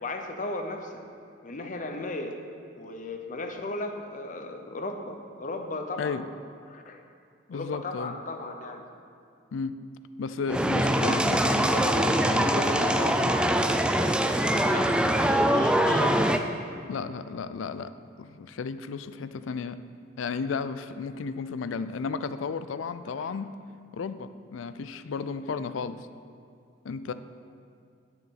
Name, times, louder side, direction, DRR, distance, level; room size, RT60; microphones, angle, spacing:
voice 1, 0.0-1.1 1.4-2.4 2.7-6.2 6.7-7.0 7.5-8.9 14.5-16.2 23.2-23.3, left 2 dB, 45° left, 4 dB, 0.7 m, -36 dB
voice 2, 7.5-8.1 9.5-9.8 10.2-13.4 16.8-17.9 18.2-19.8 20.2-23.5 23.9-26.1 26.8-27.1, left 5 dB, 80° left, 12 dB, 0.4 m, -34 dB
sound 1, 10.5-16.4, right 1 dB, 5° right, 0.3 m, -23 dB
10.0 x 6.9 x 4.2 m, 2.4 s
head